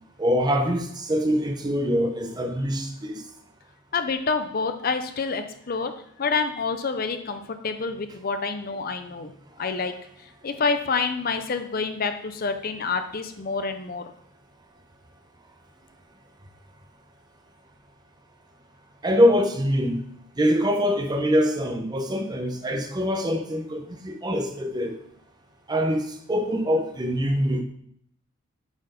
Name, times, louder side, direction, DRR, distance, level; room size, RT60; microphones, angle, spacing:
voice 1, 0.2-3.2 9.7-9.8 19.0-20.0 20.4-25.0 25.7-27.6, equal, 20° right, 5 dB, 0.7 m, -24 dB
voice 2, 3.9-5.9 6.2-9.3 9.6-9.9 10.4-14.0, left 4 dB, 45° left, 8 dB, 0.5 m, -27 dB
8.1 x 4.4 x 5.1 m, 0.67 s
head